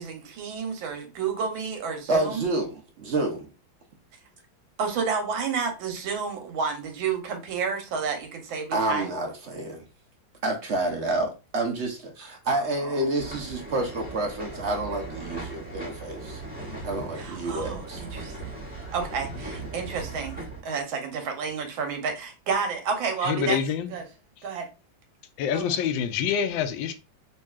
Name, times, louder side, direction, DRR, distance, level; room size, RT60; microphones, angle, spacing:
voice 1, 0.0-2.4 4.8-9.1 12.8-13.1 17.2-18.5 18.9-20.4 20.6-23.6 23.9-24.0 24.4-24.7 25.5-25.7, right 5 dB, 85° right, 1.6 m, -30 dB
voice 2, 2.1-3.5 8.7-9.8 10.4-16.4 16.8-18.0, right 2 dB, 55° right, 0.7 m, -29 dB
sound 1, 13.2-20.6, right 2 dB, 5° right, 1.1 m, -38 dB
voice 3, 23.2-23.9 25.4-26.9, left 8 dB, 85° left, 1.3 m, -26 dB
5.4 x 2.6 x 2.3 m
omnidirectional pair, 2.1 m